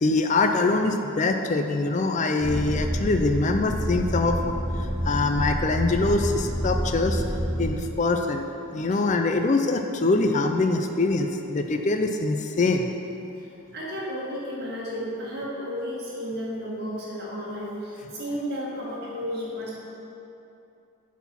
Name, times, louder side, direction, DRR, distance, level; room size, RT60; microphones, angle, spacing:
voice 1, 0.0-7.2 7.6-8.5 8.7-12.9, left 3 dB, 35° left, 5 dB, 0.4 m, -24 dB
sound 1, 2.4-7.7, equal, 15° right, 0.9 m, -28 dB
voice 2, 13.4-19.8, equal, 50° right, -6 dB, 2.0 m, -33 dB
10.0 x 4.2 x 5.6 m, 2.8 s
head